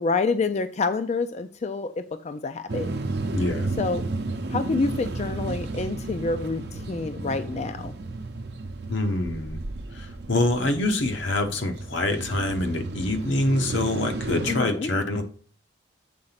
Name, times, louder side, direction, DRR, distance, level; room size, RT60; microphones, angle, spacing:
voice 1, 0.0-2.9 3.8-4.0 4.5-7.9 14.5-15.0, left 3 dB, 35° left, 9 dB, 0.4 m, -27 dB
sound 1, 2.7-14.6, right 2 dB, 60° right, 0.7 m, -33 dB
voice 2, 3.3-3.7 8.9-9.6 9.9-15.2, left 2 dB, 80° left, 6 dB, 1.1 m, -25 dB
7.6 x 3.9 x 5.8 m, 0.43 s
head